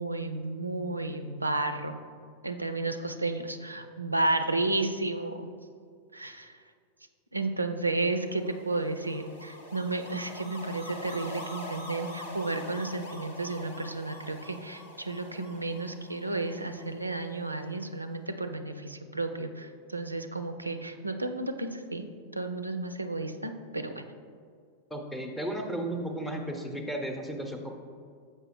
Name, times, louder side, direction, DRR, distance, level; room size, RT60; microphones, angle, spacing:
voice 1, 0.0-2.0 2.4-5.5 6.1-6.6 7.3-22.1 22.3-24.0, right 2 dB, 85° right, 8 dB, 0.3 m, -32 dB
sound 1, 8.2-17.5, left 1 dB, 60° left, 1.0 m, -44 dB
voice 2, 24.9-27.7, right 1 dB, 5° left, 3 dB, 0.7 m, -34 dB
6.7 x 5.4 x 3.1 m, 2.1 s
figure-of-eight pair, 90°, 0 cm